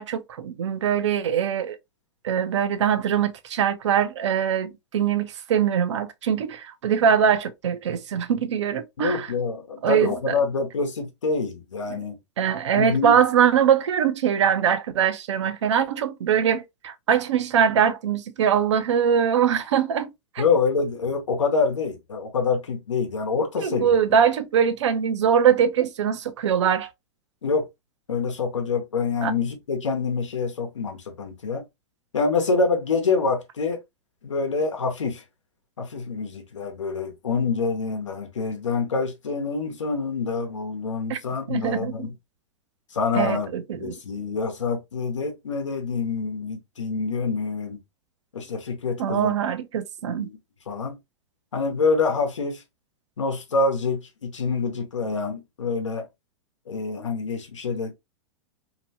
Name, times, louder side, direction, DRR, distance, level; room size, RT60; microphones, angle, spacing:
voice 1, 0.0-1.8 2.2-9.3 9.8-10.3 11.9-12.0 12.4-20.1 20.3-20.4 23.6-26.9 29.2-29.3 41.1-41.2 41.5-41.9 43.1-43.9 49.0-50.3, right 8 dB, 75° right, 0.5 m, -22 dB
voice 2, 9.0-12.2 12.8-13.2 20.4-23.9 27.4-27.7 28.1-31.6 32.1-33.8 34.2-35.2 35.8-42.2 42.9-47.8 48.3-49.3 50.2-50.4 50.7-51.0 51.5-52.6 53.2-56.0 56.7-57.9, left 4 dB, 85° left, 0.9 m, -26 dB
2.8 x 2.1 x 2.7 m
hypercardioid pair, 105°, 15 cm